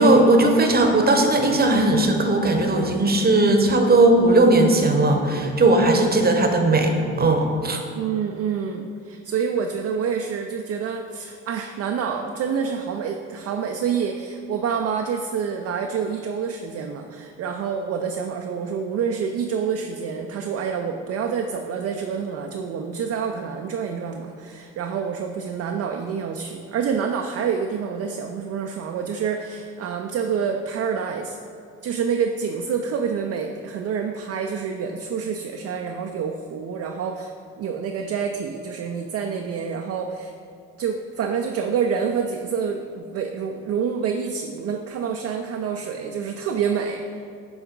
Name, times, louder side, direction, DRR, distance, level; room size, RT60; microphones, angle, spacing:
voice 1, 0.0-7.8, right 2 dB, 25° right, 4 dB, 0.9 m, -18 dB
voice 2, 7.9-31.4 31.8-37.3 37.6-40.4 40.8-47.0, right 6 dB, 45° right, 3 dB, 0.5 m, -27 dB
6.8 x 3.6 x 3.9 m, 2.4 s
hypercardioid pair, 45°, 37 cm